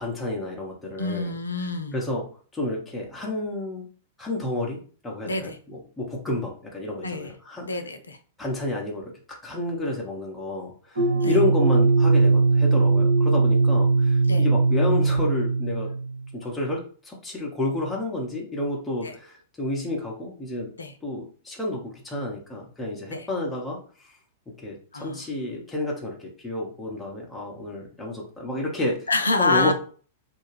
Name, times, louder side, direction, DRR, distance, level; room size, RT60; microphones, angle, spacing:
voice 1, 0.0-1.3 1.6-2.2 2.5-3.9 4.2-7.7 8.4-15.9 16.3-20.7 21.0-24.2 24.6-29.1 29.4-29.7, left 2 dB, 10° left, -2 dB, 0.8 m, -30 dB
voice 2, 1.0-2.0 5.2-5.6 7.0-7.3 7.6-8.2 11.2-11.4 14.3-14.5 19.0-19.1 20.8-20.9 23.1-23.3 24.9-25.3 29.1-29.7, left 3 dB, 75° left, 7 dB, 0.4 m, -27 dB
sound 1, 11.0-16.2, right 3 dB, 70° right, 1.3 m, -20 dB
2.5 x 2.2 x 3.2 m, 0.41 s
figure-of-eight pair, 100°, 0 cm